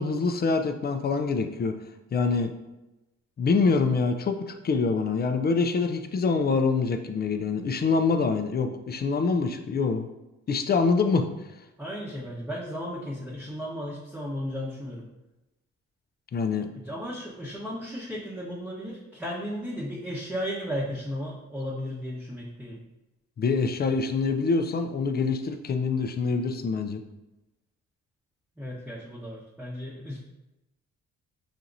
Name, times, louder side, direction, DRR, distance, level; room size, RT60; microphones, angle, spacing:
voice 1, 0.0-1.8 2.1-2.5 3.4-10.1 10.5-11.3 16.3-16.7 23.4-27.0, left 4 dB, 35° left, 6 dB, 0.5 m, -25 dB
voice 2, 11.8-15.1 16.8-22.8 28.6-30.3, equal, 5° right, -8 dB, 1.0 m, -35 dB
5.9 x 2.8 x 2.6 m, 0.99 s
cardioid pair, 90°, 30 cm